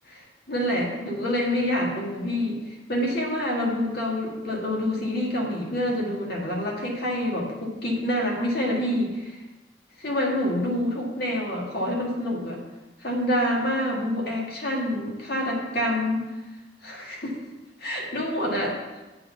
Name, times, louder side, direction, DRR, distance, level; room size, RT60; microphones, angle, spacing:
voice 1, 0.5-2.6 2.9-9.4 10.0-12.6 13.0-16.3 16.8-17.4 17.8-18.8, left 1 dB, 65° left, -2 dB, 1.9 m, -27 dB
8.4 x 4.1 x 5.8 m, 1.1 s
head